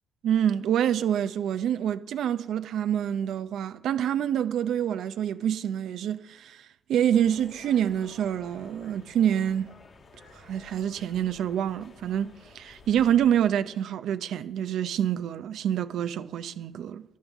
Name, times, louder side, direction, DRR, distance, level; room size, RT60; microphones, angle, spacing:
voice 1, 0.2-9.7 10.3-17.0, right 9 dB, 75° right, 0.6 m, -27 dB
sound 1, 7.1-13.4, left 3 dB, 45° left, 2.2 m, -52 dB
10.5 x 10.5 x 7.2 m
cardioid pair, 90°, 0 cm